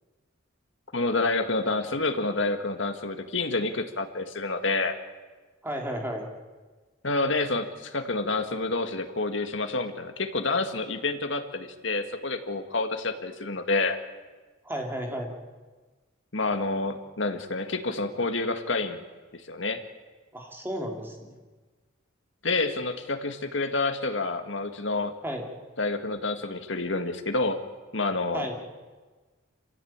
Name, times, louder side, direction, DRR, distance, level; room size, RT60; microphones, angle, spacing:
voice 1, 0.9-5.0 7.0-14.0 16.3-19.0 19.3-19.8 22.4-25.1 25.8-27.6 27.9-28.5, left 3 dB, 65° left, 7 dB, 2.0 m, -28 dB
voice 2, 5.6-6.2 14.6-15.3 20.3-21.4 25.2-25.4 28.3-28.6, equal, 10° right, 1 dB, 3.2 m, -33 dB
27.0 x 16.0 x 8.9 m, 1.3 s
head